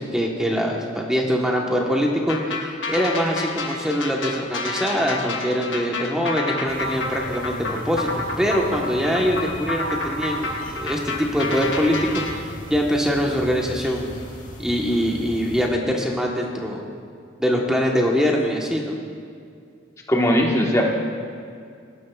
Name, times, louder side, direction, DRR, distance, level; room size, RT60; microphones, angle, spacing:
voice 1, 0.0-14.1 14.6-16.8 17.4-19.0, equal, 5° right, -1 dB, 1.0 m, -23 dB
sound 1, 2.3-12.4, left 2 dB, 80° left, 1.1 m, -29 dB
sound 2, 6.7-15.7, left 1 dB, 45° left, 1.6 m, -38 dB
voice 2, 20.1-20.9, equal, 15° left, -1 dB, 1.2 m, -19 dB
18.0 x 11.0 x 2.3 m, 2.3 s
head